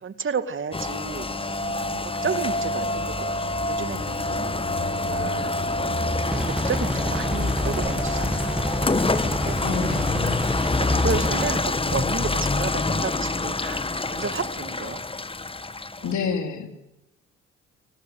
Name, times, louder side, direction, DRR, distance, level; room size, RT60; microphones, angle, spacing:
voice 1, 0.0-1.3 2.0-4.5 4.9-5.5 6.3-8.8 9.2-10.0 10.8-15.0 16.0-16.2, right 5 dB, 35° right, 10 dB, 2.2 m, -32 dB
Rain, 0.7-16.1, left 3 dB, 15° left, 1.3 m, -26 dB
sound 1, 1.2-10.2, right 7 dB, 70° right, 3.5 m, -46 dB
sound 2, 6.3-11.6, right 1 dB, 5° right, 1.5 m, -29 dB
voice 2, 9.6-10.4 16.0-16.7, left 6 dB, 60° left, 5 dB, 3.7 m, -28 dB
21.5 x 19.5 x 9.8 m, 0.92 s
hypercardioid pair, 55°, 33 cm